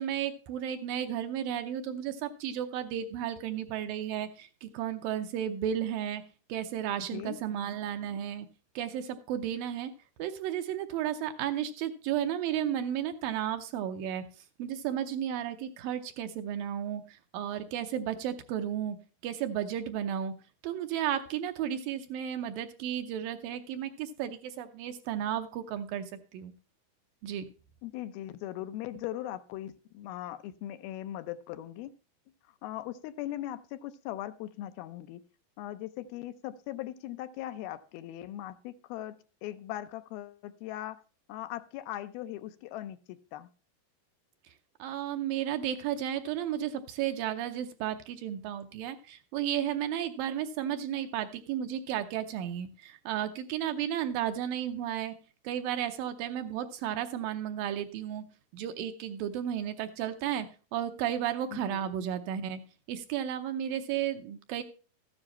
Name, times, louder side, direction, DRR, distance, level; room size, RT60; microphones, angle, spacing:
voice 1, 0.0-6.2 6.5-8.5 8.8-9.9 10.2-14.2 14.6-19.0 19.2-20.3 20.6-26.1 26.3-26.5 27.2-27.5 44.8-55.1 55.4-58.2 58.5-60.5 60.7-62.6 62.9-64.6, right 10 dB, 75° right, 8 dB, 2.3 m, -33 dB
voice 2, 7.0-7.4 27.8-31.9 32.5-35.2 35.6-41.0 41.3-43.5 61.5-61.9, left 13 dB, 80° left, 11 dB, 2.5 m, -39 dB
13.5 x 9.8 x 3.0 m, 0.35 s
omnidirectional pair, 4.5 m